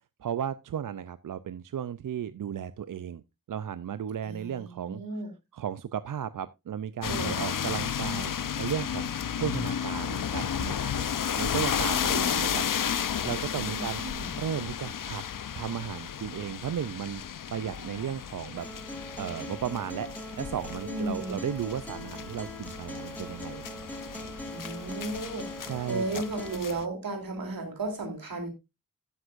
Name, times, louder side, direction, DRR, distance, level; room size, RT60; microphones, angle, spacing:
voice 1, 0.2-3.2 3.5-5.0 5.5-9.1 9.4-11.1 11.4-12.7 13.0-14.0 14.4-15.2 15.5-17.2 17.5-18.7 19.2-24.1 25.6-26.2, right 9 dB, 65° right, 0.5 m, -35 dB
voice 2, 4.2-5.3 7.1-7.5 13.6-14.3 20.8-21.4 24.5-28.5, right 2 dB, 90° right, 3.2 m, -35 dB
sound 1, 7.0-26.8, left 8 dB, 70° left, 0.7 m, -33 dB
Acoustic guitar, 18.6-26.6, equal, 5° left, 3.2 m, -42 dB
12.5 x 9.6 x 2.5 m
cardioid pair, 60°, 34 cm